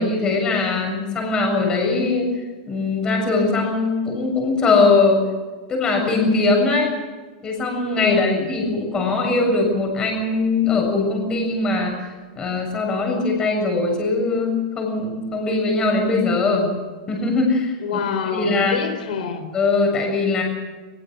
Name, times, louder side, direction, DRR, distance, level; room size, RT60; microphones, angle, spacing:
voice 1, 0.0-2.3 2.7-5.2 5.7-6.9 7.4-12.0 12.4-16.7 17.1-17.8 18.3-18.8 19.5-20.4, left 3 dB, 15° left, 2 dB, 7.2 m, -21 dB
voice 2, 8.0-8.4 17.8-19.5, left 5 dB, 90° left, 9 dB, 4.4 m, -26 dB
23.0 x 23.0 x 6.5 m, 1.3 s
supercardioid pair, 170°, 4 cm